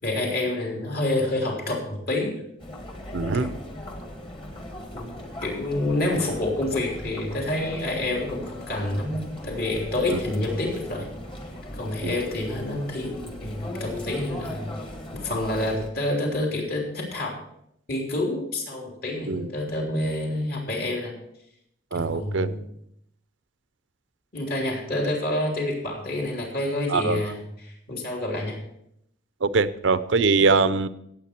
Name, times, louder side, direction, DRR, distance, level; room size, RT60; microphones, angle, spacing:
voice 1, 0.0-2.4 3.4-3.5 4.9-5.1 5.4-11.1 11.7-14.7 15.1-17.3 17.9-21.1 21.9-22.7 24.3-28.6, left 1 dB, 55° left, 0 dB, 3.3 m, -28 dB
Chatter, 2.6-15.9, left 1 dB, 30° left, 1.6 m, -39 dB
voice 2, 3.1-3.5 10.1-10.2 12.0-12.1 19.3-19.5 21.9-22.5 26.9-27.3 29.4-30.9, right 4 dB, 85° right, 14 dB, 0.7 m, -22 dB
17.0 x 8.2 x 4.4 m, 0.75 s
head